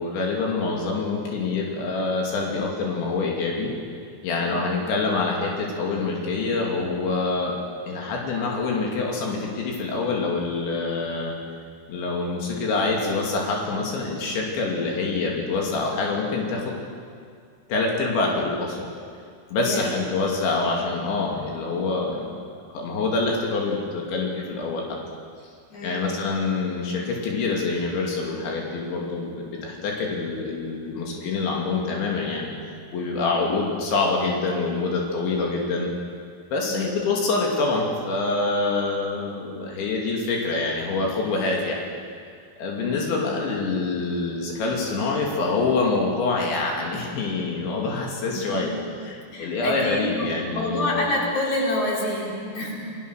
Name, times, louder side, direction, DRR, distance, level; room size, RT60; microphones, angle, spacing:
voice 1, 0.0-3.7 4.2-7.6 7.9-11.3 11.9-16.8 17.7-18.9 19.5-22.3 22.7-24.9 25.8-35.9 36.5-41.8 42.6-48.7 49.1-51.1, left 3 dB, 85° left, -1 dB, 5.1 m, -26 dB
voice 2, 19.5-19.9 25.7-26.2 36.6-37.0 42.7-43.2 48.3-48.8 49.2-50.3 50.5-53.0, left 1 dB, 40° left, -3 dB, 5.9 m, -28 dB
30.0 x 20.5 x 6.5 m, 2.2 s
omnidirectional pair, 5.1 m